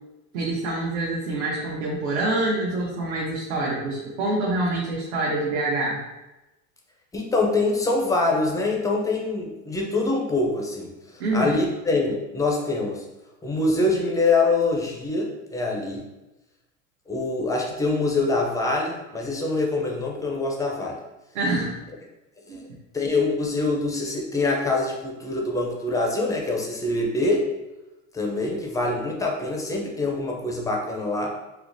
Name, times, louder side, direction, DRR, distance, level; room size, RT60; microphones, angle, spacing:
voice 1, 0.3-6.0 11.2-11.6 21.3-21.7 22.5-22.6, right 2 dB, 85° right, -5 dB, 0.9 m, -26 dB
voice 2, 7.1-13.0 13.4-16.0 17.1-21.0 22.5-22.6 22.9-27.4 28.1-31.3, left 2 dB, 10° left, 0 dB, 0.4 m, -24 dB
4.6 x 2.1 x 2.5 m, 1.0 s
supercardioid pair, 110°, 42 cm